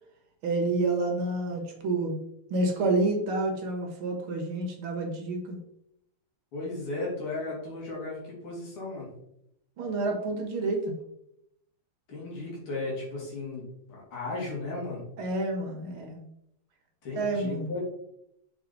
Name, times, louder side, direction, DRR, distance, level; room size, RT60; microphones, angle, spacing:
voice 1, 0.4-2.2 2.5-5.6 9.8-10.9 15.2-16.2 17.1-17.7, right 2 dB, 75° right, 1 dB, 2.3 m, -29 dB
voice 2, 6.5-9.1 12.1-15.0 17.0-17.8, left 2 dB, 85° left, -4 dB, 3.4 m, -35 dB
6.2 x 4.9 x 4.0 m, 0.78 s
omnidirectional pair, 2.3 m